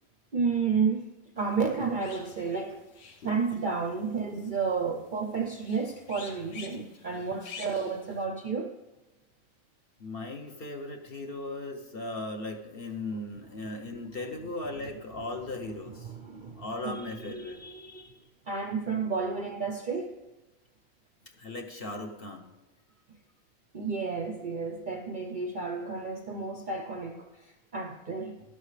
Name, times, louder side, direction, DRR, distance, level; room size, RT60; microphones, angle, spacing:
voice 1, 0.3-1.1 1.4-2.8 3.2-8.8 14.8-14.9 15.8-18.2 18.5-20.2 23.7-28.4, right 5 dB, 50° right, 4 dB, 0.6 m, -32 dB
sound 1, 1.4-8.2, left 5 dB, 80° left, 1.5 m, -50 dB
voice 2, 10.0-16.1 16.6-17.6 21.4-22.5, left 2 dB, 45° left, 4 dB, 1.0 m, -37 dB
12.0 x 11.0 x 3.3 m, 1.1 s
omnidirectional pair, 1.5 m